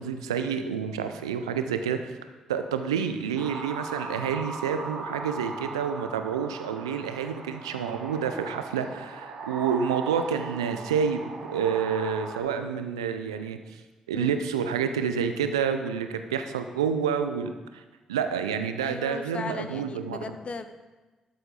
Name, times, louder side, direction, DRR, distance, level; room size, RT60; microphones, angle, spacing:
voice 1, 0.0-2.1 2.5-11.2 11.5-13.6 14.1-17.8 18.1-20.2, right 7 dB, 85° right, 8 dB, 0.5 m, -28 dB
sound 1, 3.4-12.4, right 3 dB, 65° right, 2.6 m, -38 dB
voice 2, 14.1-14.5 18.8-20.7, left 4 dB, 45° left, 10 dB, 0.8 m, -37 dB
12.5 x 7.8 x 3.8 m, 1.2 s
hypercardioid pair, 40°, 3 cm